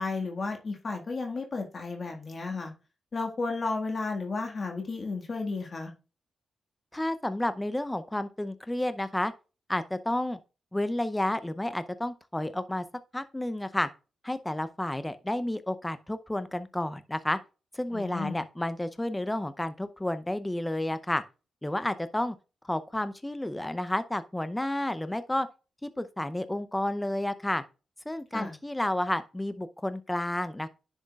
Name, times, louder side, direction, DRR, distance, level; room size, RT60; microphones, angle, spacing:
voice 1, 0.0-2.7 3.1-5.9 17.9-18.4 28.3-28.5, left 3 dB, 45° left, 1.8 m, -33 dB
voice 2, 6.9-9.3 9.7-10.4 10.7-12.8 13.1-13.9 14.2-17.4 17.7-21.2 21.6-22.3 22.6-25.5 25.8-27.6 28.1-30.7, left 1 dB, 10° left, 0.6 m, -31 dB
10.0 x 6.4 x 2.4 m
cardioid pair, 75°, 0 cm